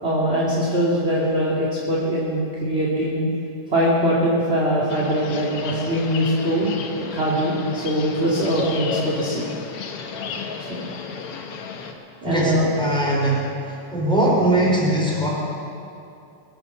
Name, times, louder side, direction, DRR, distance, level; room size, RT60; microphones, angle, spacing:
voice 1, 0.0-3.3 3.7-9.5 10.7-10.8 12.2-12.7, equal, 20° right, -7 dB, 1.9 m, -22 dB
sound 1, 4.9-11.9, left 5 dB, 75° left, 1.3 m, -33 dB
voice 2, 12.2-15.3, right 1 dB, ahead, -5 dB, 3.6 m, -21 dB
22.5 x 7.7 x 7.1 m, 2.5 s
omnidirectional pair, 4.1 m